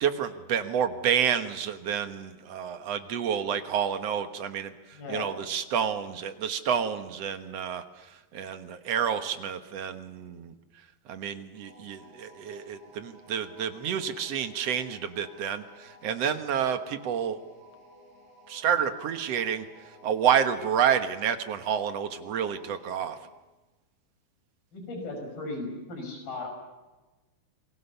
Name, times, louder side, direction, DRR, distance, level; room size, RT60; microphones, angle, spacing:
voice 1, 0.0-4.7 5.1-7.8 8.3-10.5 11.1-17.4 18.5-19.6 20.0-23.2, right 8 dB, 55° right, 8 dB, 2.0 m, -29 dB
voice 2, 4.9-5.3 24.7-26.5, left 2 dB, 75° left, 3 dB, 7.4 m, -36 dB
sound 1, 11.5-23.4, left 1 dB, 75° right, 8.2 m, -54 dB
29.0 x 22.0 x 6.9 m, 1.2 s
omnidirectional pair, 4.2 m